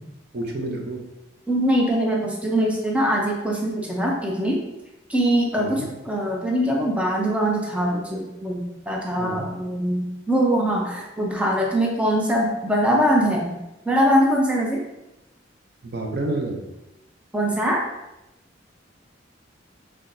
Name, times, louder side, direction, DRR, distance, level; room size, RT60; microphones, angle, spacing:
voice 1, 0.3-1.1 5.6-5.9 9.2-9.5 15.8-16.7, right 2 dB, 55° right, 2 dB, 0.7 m, -29 dB
voice 2, 1.5-4.6 5.1-13.5 13.9-14.8 17.3-17.9, equal, 5° right, -2 dB, 0.6 m, -22 dB
5.6 x 3.3 x 2.6 m, 0.92 s
head